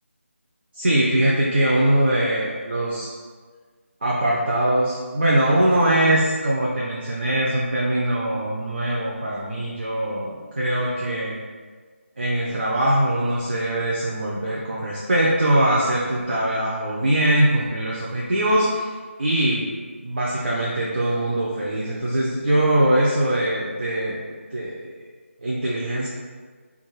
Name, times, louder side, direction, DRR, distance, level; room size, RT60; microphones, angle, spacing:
voice 1, 0.7-3.1 4.0-11.4 12.2-19.7 20.0-24.2 24.5-25.0 25.4-26.1, right 1 dB, 45° right, -5 dB, 0.4 m, -22 dB
2.3 x 2.1 x 3.1 m, 1.5 s
figure-of-eight pair, 160°, 7 cm